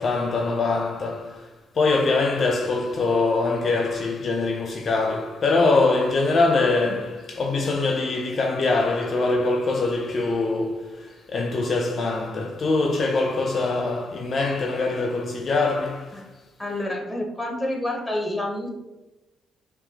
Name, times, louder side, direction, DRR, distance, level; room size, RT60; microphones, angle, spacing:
voice 1, 0.0-1.5 1.7-16.2, left 3 dB, 45° left, 0.5 m, -23 dB
voice 2, 16.6-18.7, left 1 dB, 5° left, 1.1 m, -28 dB
5.4 x 2.4 x 2.8 m
cardioid pair, 90°, 0 cm